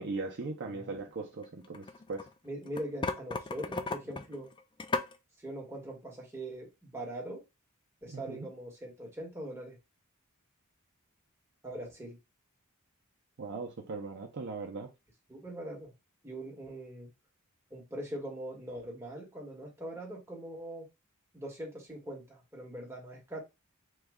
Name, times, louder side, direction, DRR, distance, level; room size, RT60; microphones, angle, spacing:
voice 1, 0.0-2.3 8.1-8.5 13.4-14.9, right 3 dB, 55° right, 0.6 m, -39 dB
sound 1, 1.4-2.3 2.7-5.1, left 3 dB, 20° left, 0.3 m, -35 dB
voice 2, 2.4-4.5 5.4-7.4 8.0-9.8 11.6-12.2 15.3-15.9 16.2-17.1 17.7-20.9 21.3-23.4, right 1 dB, 10° right, 1.2 m, -42 dB
3.1 x 2.3 x 3.5 m
head